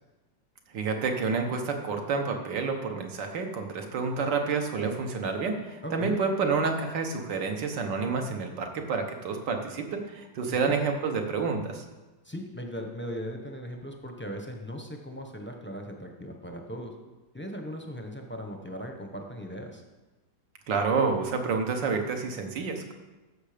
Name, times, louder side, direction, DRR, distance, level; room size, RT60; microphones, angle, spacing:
voice 1, 0.7-11.8 20.7-22.9, right 4 dB, 75° right, 4 dB, 1.9 m, -29 dB
voice 2, 5.8-6.2 10.5-10.7 12.2-16.9 17.3-19.8, equal, 10° left, 3 dB, 0.6 m, -38 dB
13.5 x 6.4 x 5.1 m, 1.1 s
omnidirectional pair, 1.9 m